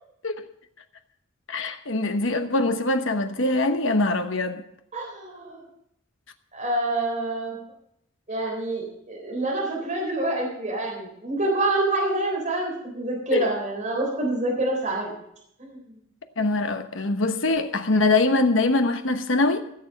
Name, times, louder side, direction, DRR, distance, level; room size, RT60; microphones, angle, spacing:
voice 1, 1.5-4.6 13.3-13.5 16.4-19.6, left 2 dB, 65° left, 1.1 m, -23 dB
voice 2, 4.9-5.6 6.5-7.6 8.3-15.1 15.6-16.0, right 2 dB, 35° right, 3.7 m, -27 dB
16.0 x 7.0 x 6.5 m
head